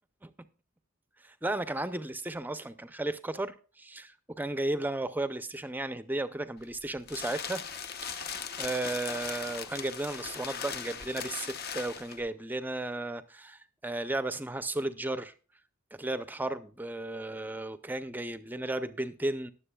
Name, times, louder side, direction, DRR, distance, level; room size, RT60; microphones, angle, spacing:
voice 1, 1.2-7.6 7.9-8.3 8.6-15.3 16.0-19.5, right 2 dB, 10° right, 0.5 m, -34 dB
sound 1, 6.6-12.3, left 7 dB, 45° left, 0.8 m, -39 dB
20.0 x 7.5 x 2.3 m
head